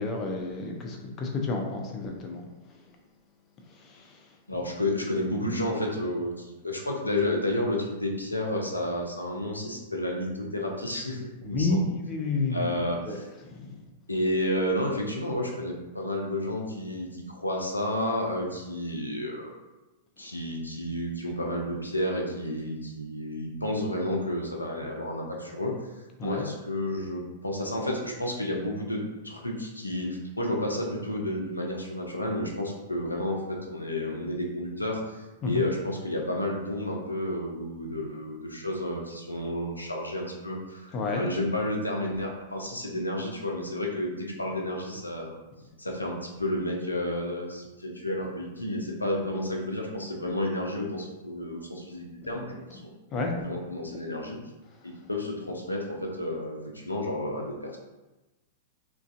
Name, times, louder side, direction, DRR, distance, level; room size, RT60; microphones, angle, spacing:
voice 1, 0.0-2.5 3.7-4.2 11.4-12.7 13.0-13.2 13.4-13.8 26.2-26.5 35.4-35.6 40.9-41.3 53.1-53.3, left 3 dB, 30° left, 1 dB, 0.4 m, -30 dB
voice 2, 4.5-11.8 12.5-13.3 14.1-19.5 20.2-25.8 26.2-45.4 45.8-52.9 53.4-54.4 54.8-57.8, left 1 dB, 90° left, 0 dB, 0.4 m, -31 dB
2.4 x 2.2 x 2.4 m, 1.1 s
figure-of-eight pair, 100°, 0 cm